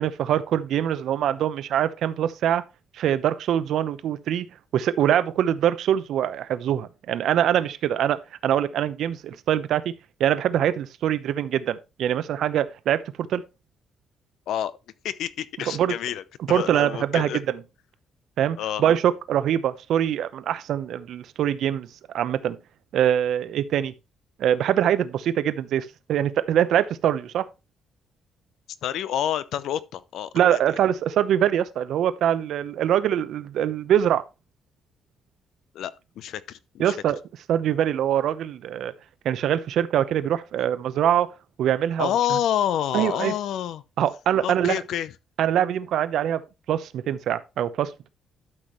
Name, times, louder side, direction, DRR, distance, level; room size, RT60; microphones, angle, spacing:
voice 1, 0.0-2.6 3.0-4.5 4.7-9.9 10.2-13.4 15.7-15.9 16.5-17.6 18.4-21.9 22.1-22.6 22.9-23.9 24.4-27.4 30.3-34.2 36.8-37.2 37.5-38.9 39.2-41.3 41.6-42.4 42.9-43.3 44.0-44.8 45.4-46.4 46.7-48.1, right 10 dB, 65° right, 0.8 m, -23 dB
voice 2, 15.0-17.4 18.6-18.8 28.8-30.6 35.7-36.9 42.0-43.8 44.4-45.1, left 10 dB, 70° left, 0.7 m, -28 dB
12.0 x 5.9 x 3.1 m
cardioid pair, 165°, 0 cm